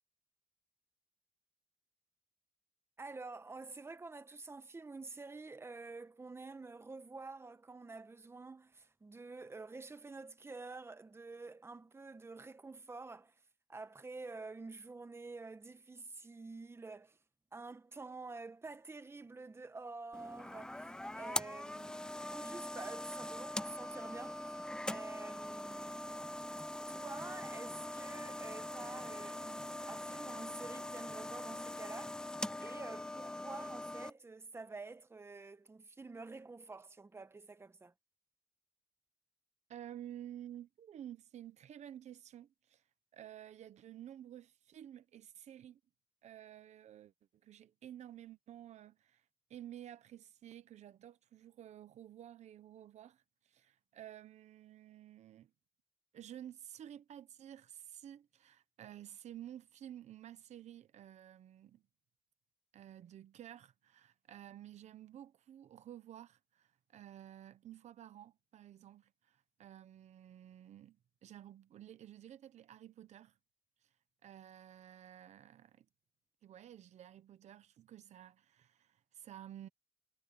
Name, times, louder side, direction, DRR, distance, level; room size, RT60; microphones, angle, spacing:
voice 1, 3.0-13.4 13.7-17.2 17.5-24.4 24.8-26.3 26.9-37.9, right 3 dB, 20° right, 1.1 m, -49 dB
sound 1, 20.1-34.1, left 1 dB, 5° left, 0.5 m, -42 dB
voice 2, 39.7-42.8 43.1-45.8 46.2-47.1 47.4-49.2 49.5-55.5 56.1-61.8 62.7-73.4 73.8-73.9 74.2-75.9 76.4-79.7, right 11 dB, 90° right, 1.0 m, -52 dB
wide cardioid pair, 115°, 11 cm